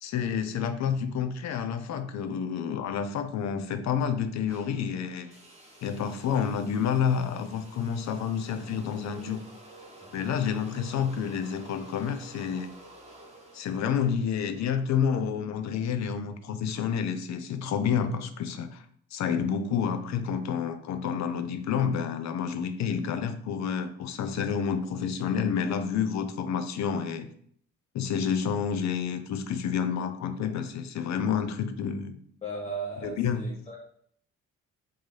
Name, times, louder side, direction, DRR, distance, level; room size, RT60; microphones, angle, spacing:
voice 1, 0.0-5.3 5.8-9.4 10.1-12.7 13.5-18.9 19.1-27.3 27.9-32.2 33.0-33.4, left 7 dB, 65° left, 9 dB, 0.5 m, -29 dB
sound 1, 4.5-14.7, right 1 dB, 20° right, 1.0 m, -51 dB
voice 2, 32.4-33.8, right 2 dB, 20° left, -3 dB, 0.7 m, -36 dB
3.8 x 2.6 x 3.1 m, 0.63 s
cardioid pair, 90°, 30 cm